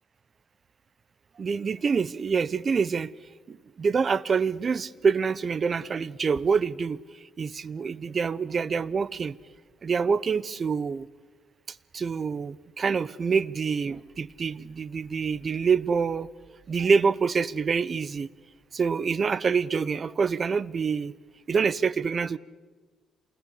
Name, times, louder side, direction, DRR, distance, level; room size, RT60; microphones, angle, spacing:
voice 1, 1.4-3.1 3.5-7.0 7.4-9.4 9.8-11.1 11.7-16.3 16.7-18.3 18.7-21.1 21.5-22.4, right 5 dB, 40° right, 0.8 m, -26 dB
28.0 x 20.0 x 8.4 m
cardioid pair, 90°, 0 cm